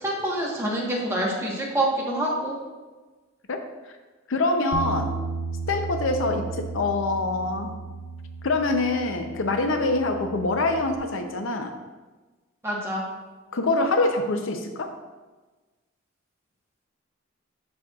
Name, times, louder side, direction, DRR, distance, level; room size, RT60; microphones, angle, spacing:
voice 1, 0.0-2.6 12.6-13.0, right 1 dB, 10° right, -3 dB, 1.1 m, -26 dB
voice 2, 4.3-5.1 5.7-7.7 8.4-11.7 13.5-14.9, left 2 dB, 70° left, 6 dB, 0.6 m, -25 dB
Bass guitar, 4.7-11.0, right 4 dB, 60° right, 0.5 m, -35 dB
12.5 x 4.3 x 2.4 m, 1.3 s
head